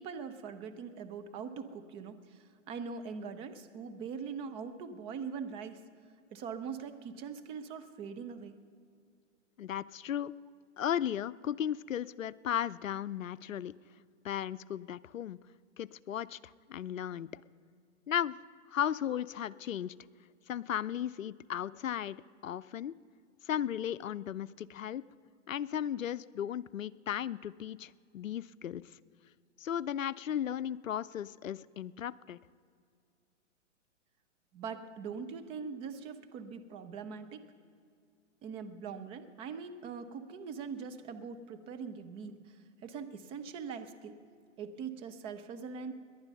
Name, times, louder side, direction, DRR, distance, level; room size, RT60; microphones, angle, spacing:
voice 1, 0.0-5.8 6.3-8.5 34.5-37.5 38.4-42.4 42.8-44.2 44.6-45.9, right 6 dB, 15° right, 9 dB, 0.5 m, -42 dB
voice 2, 9.6-10.3 10.8-13.7 14.2-15.4 15.8-17.4 18.1-18.3 18.7-19.9 20.5-22.9 23.5-25.0 25.5-28.8 29.6-32.4, left 10 dB, 90° left, 17 dB, 0.5 m, -35 dB
18.5 x 11.0 x 5.4 m, 2.3 s
hypercardioid pair, 125°, 38 cm